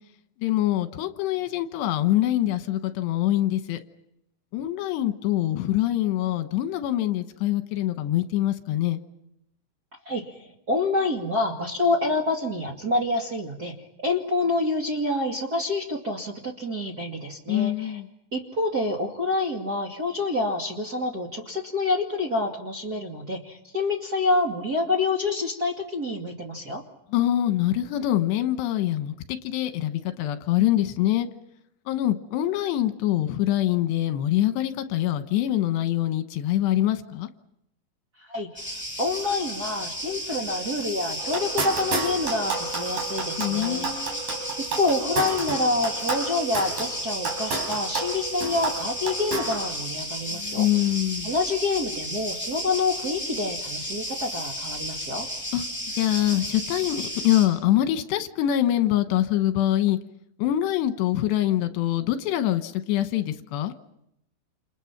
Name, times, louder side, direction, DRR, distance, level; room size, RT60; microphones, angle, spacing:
voice 1, 0.4-3.8 4.5-9.0 17.5-18.1 27.1-29.1 29.4-31.3 31.9-37.3 43.4-44.2 50.3-51.3 55.5-55.6 56.0-60.0 60.4-63.7, left 13 dB, 80° left, 9 dB, 3.3 m, -24 dB
voice 2, 10.7-13.8 14.0-18.0 18.3-26.8 38.3-44.2 44.8-50.7 51.2-55.3, left 2 dB, 30° right, 0 dB, 1.9 m, -27 dB
sound 1, 38.6-57.5, equal, ahead, 7.3 m, -33 dB
sound 2, 41.2-49.7, right 4 dB, 55° right, 6.0 m, -32 dB
29.0 x 28.0 x 5.9 m, 0.82 s
omnidirectional pair, 4.9 m